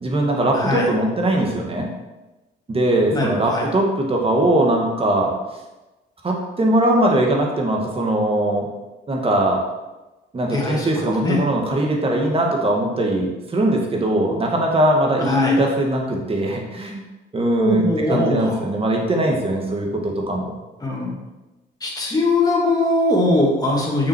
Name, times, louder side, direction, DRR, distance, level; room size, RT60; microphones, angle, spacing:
voice 1, 0.0-1.9 2.7-5.3 6.2-8.7 9.1-9.6 10.3-17.0 17.3-20.5, right 1 dB, 30° right, 0 dB, 1.9 m, -20 dB
voice 2, 0.5-0.9 3.1-3.7 10.5-11.4 15.2-15.6 17.6-18.6 20.8-21.2 21.8-24.1, left 2 dB, 20° left, -3 dB, 2.3 m, -21 dB
6.5 x 6.5 x 4.6 m, 1.1 s
cardioid pair, 100°, 20 cm